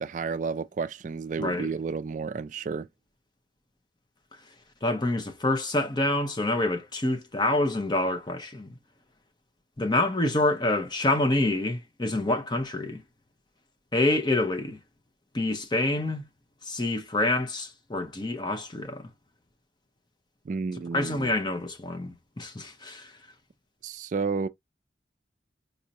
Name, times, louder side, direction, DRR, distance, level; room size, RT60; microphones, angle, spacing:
voice 1, 0.0-2.9 20.5-21.3 23.8-24.5, right 5 dB, 45° right, 0.3 m, -31 dB
voice 2, 4.8-8.8 9.8-13.0 13.9-14.8 15.3-16.3 16.7-19.0 20.9-23.1, left 2 dB, 25° left, 0.7 m, -27 dB
5.2 x 2.7 x 2.8 m
head